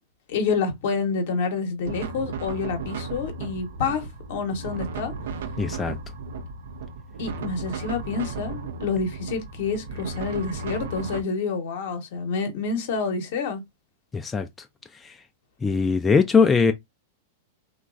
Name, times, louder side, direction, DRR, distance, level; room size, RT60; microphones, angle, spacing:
voice 1, 0.3-5.1 7.2-13.6, left 5 dB, 65° left, 0.8 m, -28 dB
sound 1, 1.8-11.2, right 4 dB, 70° right, 0.4 m, -35 dB
voice 2, 5.6-6.0 14.1-14.5 15.0-15.1 15.6-16.7, left 5 dB, 15° left, 0.3 m, -20 dB
2.9 x 2.2 x 2.4 m
hypercardioid pair, 105°, 0 cm